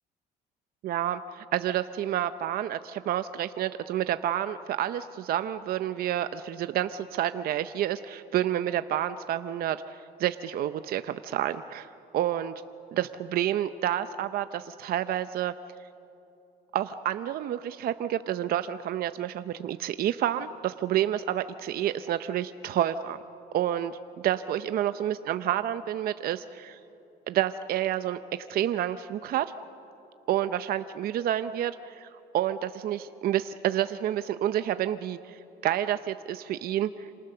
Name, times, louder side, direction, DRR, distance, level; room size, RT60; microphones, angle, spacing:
voice 1, 0.8-12.5 12.9-15.5 16.7-23.2 23.5-24.0 24.2-26.8 27.3-29.5 30.3-37.1, right 11 dB, 60° right, 11 dB, 0.7 m, -29 dB
27.5 x 26.5 x 6.8 m, 2.8 s
cardioid pair, 110°, 17 cm